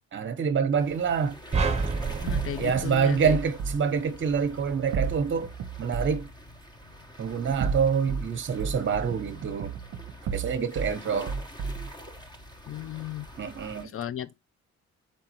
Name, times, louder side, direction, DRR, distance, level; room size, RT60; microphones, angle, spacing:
voice 1, 0.1-1.4 2.6-5.5 5.8-6.3 7.2-9.7 10.3-11.3 13.4-13.9, right 6 dB, 40° right, 1.0 m, -26 dB
sound 1, 0.8-13.9, equal, 15° left, 1.0 m, -46 dB
sound 2, 1.5-3.9, right 4 dB, 20° right, 1.2 m, -29 dB
voice 2, 2.2-3.4 12.7-13.3 13.8-14.4, left 11 dB, 45° left, 0.5 m, -35 dB
sound 3, 2.3-3.8 4.9-6.2 7.4-8.3 8.6-10.9 11.3-11.9, right 5 dB, 65° right, 0.7 m, -32 dB
4.6 x 3.9 x 3.0 m
cardioid pair, 90°, 30 cm